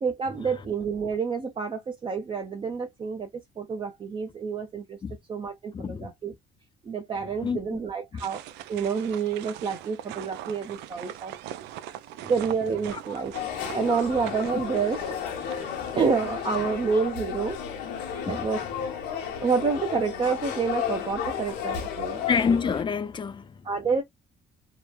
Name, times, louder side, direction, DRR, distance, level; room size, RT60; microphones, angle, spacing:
voice 1, 0.0-3.3 3.6-5.0 5.3-6.3 6.9-8.4 8.7-11.3 12.3-13.3 13.7-15.0 15.9-17.6 18.3-18.6 19.4-22.3 23.6-24.0, right 5 dB, 30° right, 0.6 m, -28 dB
voice 2, 5.7-6.1 7.4-7.6 8.1-8.2 12.9-13.0 15.8-15.9 18.3-18.5 22.3-23.7, left 6 dB, 30° left, 0.4 m, -27 dB
sound 1, 8.2-16.6, right 12 dB, 85° right, 0.4 m, -41 dB
sound 2, 13.3-22.8, left 8 dB, 90° left, 1.0 m, -33 dB
3.0 x 2.1 x 2.3 m
cardioid pair, 110°, 17 cm